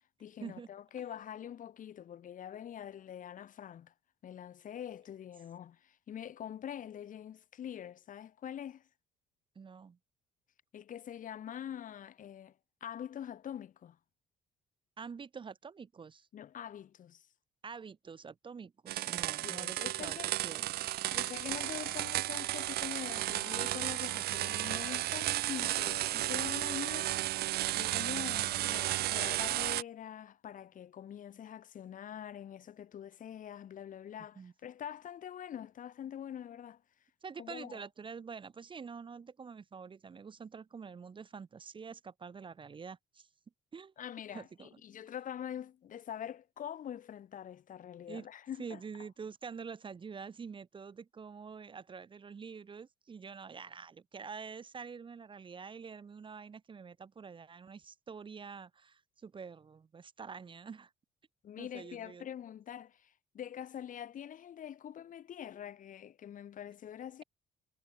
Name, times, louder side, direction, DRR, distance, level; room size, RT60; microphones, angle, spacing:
voice 1, 0.2-3.9 4.2-8.8 10.7-12.5 12.8-14.0 16.3-17.3 19.4-20.3 21.1-27.2 27.7-36.8 37.4-37.8 44.0-48.8 61.4-67.2, left 9 dB, 50° left, 2.4 m, -44 dB
voice 2, 9.5-10.0 15.0-16.3 17.6-20.8 34.4-34.5 37.2-43.3 43.7-43.9 44.3-44.8 48.1-48.3 48.6-60.9 61.6-62.3, right 5 dB, 30° right, 1.2 m, -47 dB
sound 1, 18.9-29.8, right 15 dB, 70° right, 0.7 m, -34 dB
cardioid pair, 110°, 17 cm